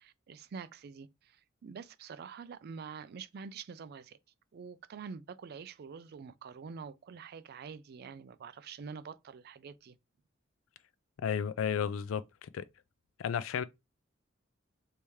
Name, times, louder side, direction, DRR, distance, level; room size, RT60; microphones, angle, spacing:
voice 1, 0.0-4.2 4.5-10.0, right 5 dB, 50° right, 0.4 m, -46 dB
voice 2, 11.2-12.6 13.2-13.6, left 7 dB, 75° left, 0.3 m, -33 dB
3.4 x 2.8 x 3.1 m
head